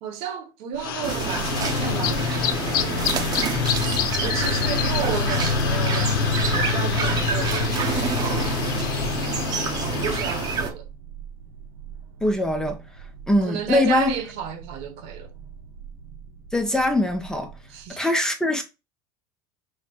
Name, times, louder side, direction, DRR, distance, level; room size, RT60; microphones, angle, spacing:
voice 1, 0.0-2.2 4.2-8.0 9.8-10.9 13.4-15.3 17.7-18.0, right 8 dB, 60° right, 1.0 m, -32 dB
sound 1, 0.7-17.9, right 7 dB, 80° right, 1.1 m, -42 dB
sound 2, 0.8-10.7, left 7 dB, 90° left, 0.6 m, -26 dB
sound 3, 1.0-10.7, right 5 dB, 35° right, 0.7 m, -28 dB
voice 2, 12.2-12.8 13.3-14.1 16.5-17.5 18.0-18.6, left 1 dB, 5° left, 0.5 m, -22 dB
5.7 x 2.1 x 2.8 m
supercardioid pair, 135°, 12 cm